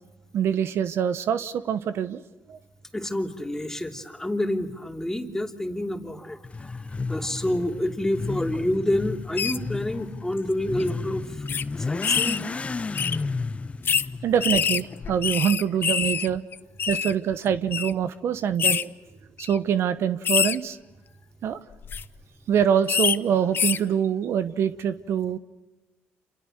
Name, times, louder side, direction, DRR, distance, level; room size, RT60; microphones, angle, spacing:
voice 1, 0.3-2.2 2.5-2.6 14.2-16.4 16.9-18.9 19.4-20.8 21.4-21.6 22.5-25.4, right 8 dB, 60° right, 12 dB, 1.1 m, -24 dB
voice 2, 2.9-11.4 11.8-12.4, left 1 dB, 10° left, 3 dB, 3.3 m, -28 dB
Motorcycle / Accelerating revving vroom, 6.4-15.3, left 4 dB, 25° left, 1.0 m, -33 dB
sound 1, 9.4-9.6 10.4-10.5 10.8-10.9 11.5-11.6 12.0-12.4 13.0-13.2 13.9-14.1 14.4-16.3 16.5-17.1 17.7-17.9 18.6-18.8 19.4-19.6 20.2-20.6 21.7-22.0 22.9-23.2 23.5-23.8, left 7 dB, 50° left, 1.0 m, -25 dB
28.5 x 27.5 x 6.6 m, 1.1 s
supercardioid pair, 70°, 5 cm